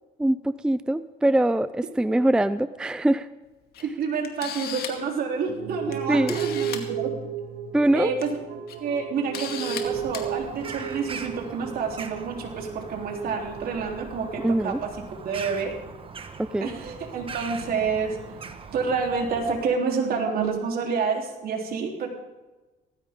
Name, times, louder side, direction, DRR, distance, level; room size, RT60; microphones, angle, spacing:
voice 1, 0.2-3.3 6.1-6.4 7.7-8.1 14.4-14.8 16.4-16.7, right 1 dB, 5° right, 14 dB, 0.4 m, -23 dB
Camera, 3.7-3.8 4.2-5.1 5.9-6.0 6.3-6.8 8.0-8.2 8.7-8.8 9.3-9.8 10.1-10.3, left 9 dB, 65° left, 2.3 m, -35 dB
voice 2, 3.8-7.2 7.9-8.4 8.8-14.9 15.2-15.7 16.6-18.2 18.7-22.1, right 5 dB, 60° right, 1 dB, 3.6 m, -28 dB
sound 1, 5.5-14.0 14.3-14.8 15.2-15.3 15.8-15.9 16.9-19.0 19.3-19.4 19.7-20.6, right 8 dB, 80° right, 1.6 m, -35 dB
Bird vocalization bird call bird song, 9.8-19.6, right 5 dB, 30° right, 1.4 m, -41 dB
18.5 x 15.5 x 3.7 m, 1.2 s
cardioid pair, 110°, 17 cm